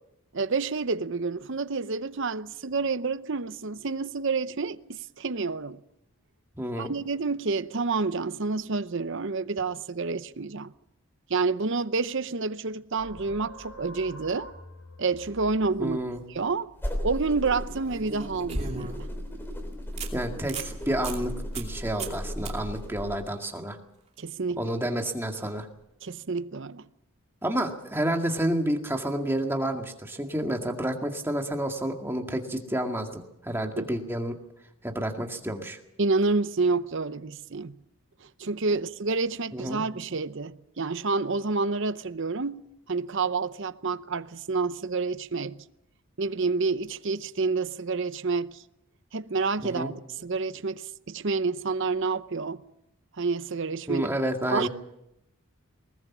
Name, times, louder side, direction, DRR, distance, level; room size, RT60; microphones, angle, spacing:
voice 1, 0.3-5.8 6.8-10.7 11.3-14.5 15.0-16.0 16.3-16.7 17.0-19.1 24.2-24.6 26.0-26.9 33.8-33.9 36.0-37.8 38.2-45.6 46.2-48.6 49.1-49.9 50.2-52.6 53.2-54.1 54.5-54.7, right 4 dB, 55° right, 0.7 m, -29 dB
voice 2, 6.6-6.9 15.8-16.2 20.1-23.8 24.6-25.7 27.4-34.4 34.8-35.8 39.5-39.8 49.6-49.9 53.9-54.7, right 1 dB, 10° right, 2.0 m, -30 dB
sound 1, 13.0-18.2, equal, 85° left, 6.7 m, -48 dB
sound 2, 16.1-16.4 17.8-19.1 19.5-19.6 20.0-20.1 20.4-20.7 21.0-21.2 21.5-21.7 22.0-22.2 22.5-22.6 25.6-25.7, right 3 dB, 30° right, 2.7 m, -35 dB
sound 3, 16.7-23.2, equal, 10° left, 3.3 m, -36 dB
21.0 x 20.0 x 7.3 m
head